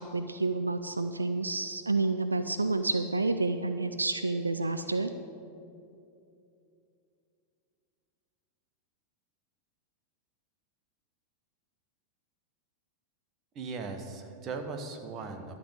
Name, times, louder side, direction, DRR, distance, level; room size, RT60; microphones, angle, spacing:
voice 1, 0.0-5.1, right 3 dB, 80° right, 9 dB, 0.3 m, -29 dB
voice 2, 13.5-15.6, right 4 dB, 30° right, 5 dB, 1.0 m, -38 dB
11.5 x 4.1 x 8.0 m, 2.6 s
figure-of-eight pair, 90°, 0 cm